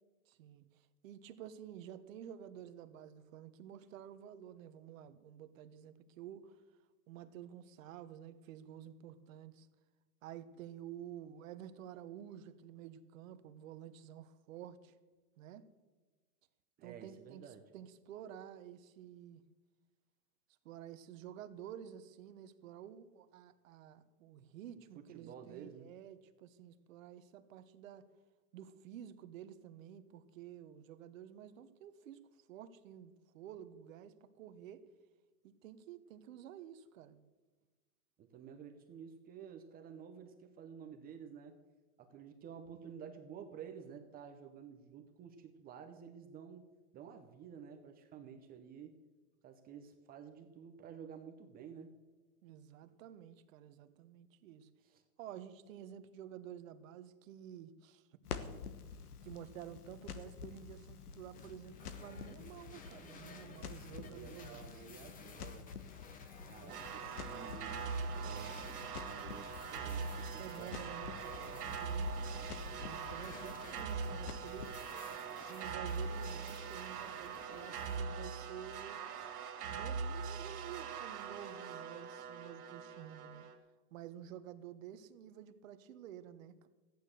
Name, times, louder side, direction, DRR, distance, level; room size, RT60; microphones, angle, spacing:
voice 1, 0.3-0.6 1.0-6.6 7.1-9.7 10.2-14.9 15.4-15.7 16.8-19.4 20.6-28.1 28.5-32.2 32.5-34.8 35.4-37.2 52.4-54.7 55.2-58.0 59.2-64.7 70.4-72.4 72.8-74.8 75.3-79.0 79.7-83.5 83.9-86.7, right 10 dB, 60° right, 1.2 m, -51 dB
voice 2, 16.8-17.6 24.9-25.9 38.2-41.6 42.0-46.7 46.9-49.0 49.4-51.9 54.8-55.0 63.6-65.7 66.4-70.8, right 7 dB, 20° right, 0.8 m, -52 dB
Crackle, 58.2-74.7, left 6 dB, 90° left, 1.4 m, -49 dB
sound 1, 61.3-78.1, left 4 dB, 20° left, 1.1 m, -56 dB
sound 2, 66.7-83.5, right 5 dB, 85° right, 2.5 m, -42 dB
14.5 x 9.7 x 6.6 m
supercardioid pair, 145°, 44 cm